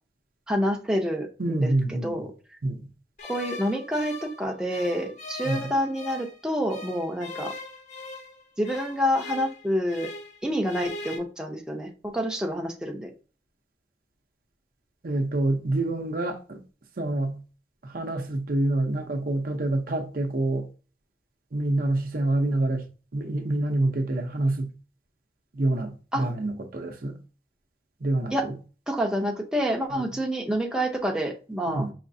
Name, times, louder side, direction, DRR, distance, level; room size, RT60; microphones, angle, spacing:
voice 1, 0.5-2.3 3.3-7.5 8.6-10.1 10.4-13.1 26.1-26.3 28.3-28.5 28.9-31.9, equal, 5° right, 0.6 m, -28 dB
voice 2, 1.4-2.2 2.6-2.9 5.5-5.6 15.0-16.6 17.0-17.4 17.8-20.7 21.5-22.8 23.1-24.7 25.5-27.2 28.0-28.5 29.9-30.0 31.7-31.9, right 2 dB, 55° right, 0.6 m, -27 dB
sound 1, 3.2-6.4 6.7-10.4 10.6-11.2, left 2 dB, 45° left, 0.7 m, -40 dB
4.9 x 3.1 x 2.6 m
head